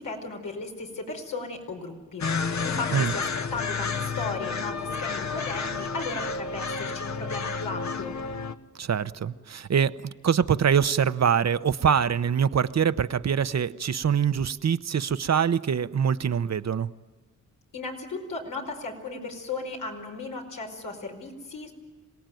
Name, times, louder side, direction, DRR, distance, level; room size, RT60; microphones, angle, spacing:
voice 1, 0.0-8.2 17.7-21.7, left 3 dB, 90° left, 1 dB, 5.0 m, -36 dB
sound 1, 2.2-8.5, left 5 dB, 60° left, 1.2 m, -30 dB
voice 2, 8.8-16.9, right 7 dB, 55° right, 13 dB, 0.8 m, -24 dB
27.5 x 18.0 x 9.2 m, 1.4 s
cardioid pair, 60°, 31 cm